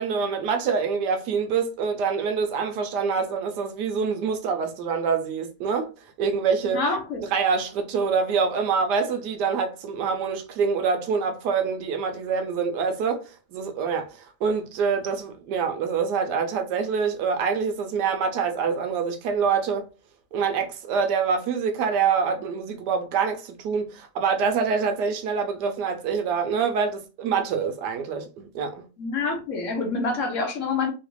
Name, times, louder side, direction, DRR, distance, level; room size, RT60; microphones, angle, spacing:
voice 1, 0.0-5.9 6.2-6.8 7.3-19.9 20.3-28.9, right 6 dB, 75° right, 1.1 m, -25 dB
voice 2, 6.7-7.2 29.0-30.9, left 4 dB, 60° left, 0.8 m, -26 dB
3.2 x 2.4 x 3.0 m
omnidirectional pair, 2.0 m